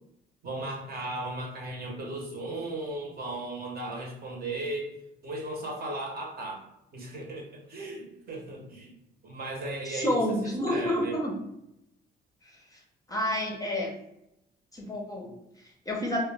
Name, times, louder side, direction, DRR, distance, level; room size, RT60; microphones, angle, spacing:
voice 1, 0.4-4.9 5.2-6.6 6.9-8.9 9.2-11.2, right 2 dB, 50° right, 0 dB, 0.8 m, -36 dB
voice 2, 9.8-11.3 12.4-12.8 13.1-13.9 14.7-16.2, left 1 dB, 20° left, 0 dB, 0.6 m, -30 dB
2.2 x 2.1 x 3.2 m, 0.83 s
cardioid pair, 90°, 20 cm